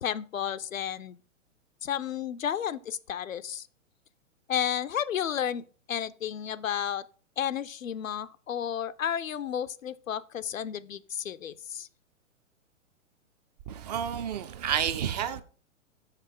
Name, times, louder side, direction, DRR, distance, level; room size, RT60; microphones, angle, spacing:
voice 1, 0.0-1.2 1.8-3.7 4.5-5.6 5.9-7.0 7.4-11.9, left 9 dB, 85° left, 0.5 m, -32 dB
voice 2, 13.7-15.4, right 9 dB, 35° right, 0.4 m, -30 dB
5.7 x 5.7 x 3.6 m
figure-of-eight pair, 115°, 39 cm